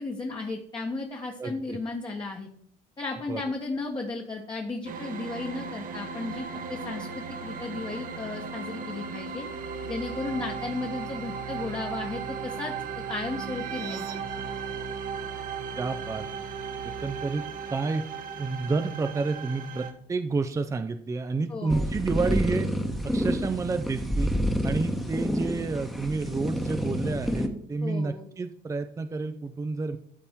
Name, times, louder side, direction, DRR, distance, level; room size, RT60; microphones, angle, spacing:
voice 1, 0.0-2.5 3.0-9.5 9.9-14.1 21.5-21.8 27.8-28.2, left 3 dB, 25° left, 0 dB, 1.2 m, -34 dB
voice 2, 1.4-1.8 3.3-3.4 15.8-16.2 16.8-17.4 17.7-18.0 18.4-22.7 23.0-24.3 24.6-30.0, right 3 dB, 20° right, 9 dB, 0.5 m, -30 dB
sound 1, 4.9-19.9, right 5 dB, 55° right, 1.1 m, -36 dB
sound 2, 21.7-27.5, equal, ahead, 1.0 m, -28 dB
13.0 x 4.3 x 3.6 m, 0.63 s
cardioid pair, 110°, 17 cm